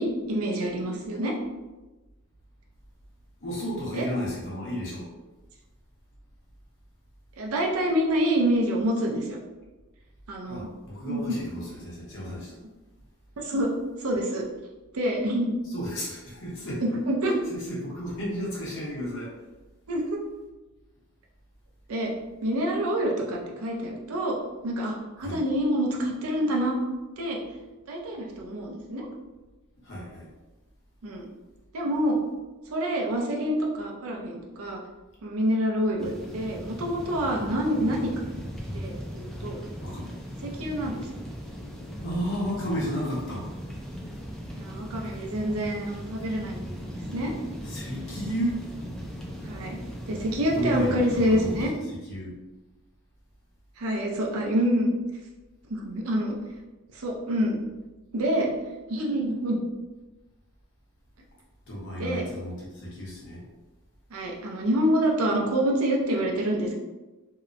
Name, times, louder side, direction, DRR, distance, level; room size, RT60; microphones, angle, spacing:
voice 1, 0.0-1.3 3.9-4.1 7.4-9.4 10.3-10.7 11.0-11.2 13.4-13.7 14.0-14.4 14.9-15.5 16.8-17.3 19.9-20.2 21.9-22.1 22.4-24.4 24.6-26.7 27.2-27.4 27.9-29.1 31.0-31.3 31.7-32.2 32.7-34.8 35.2-38.3 38.7-39.6 40.4-41.1 44.5-47.3 49.4-49.8 50.1-51.7 53.8-54.9 55.7-56.4 56.9-57.6 58.1-58.5 58.9-59.6 62.0-62.3 64.1-66.7, equal, 90° right, 0 dB, 0.5 m, -27 dB
voice 2, 3.4-5.1 10.5-12.5 15.7-16.8 17.5-19.3 25.2-25.4 29.8-30.3 39.8-40.1 40.5-40.6 42.0-43.5 47.6-48.7 50.5-51.5 52.1-52.3 61.7-63.4, equal, 60° left, -6 dB, 1.0 m, -33 dB
sound 1, 36.0-51.7, equal, 5° left, 0.4 m, -38 dB
2.8 x 2.1 x 2.5 m, 1.1 s
head